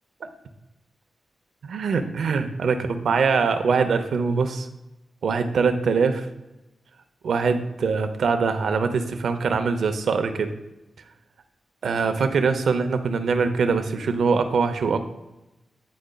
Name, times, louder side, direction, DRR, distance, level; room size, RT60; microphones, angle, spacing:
voice 1, 1.6-4.7 5.2-6.3 7.2-10.5 11.8-15.0, right 5 dB, 75° right, 8 dB, 0.6 m, -23 dB
9.2 x 5.0 x 2.2 m, 0.96 s
wide cardioid pair, 170°, 0 cm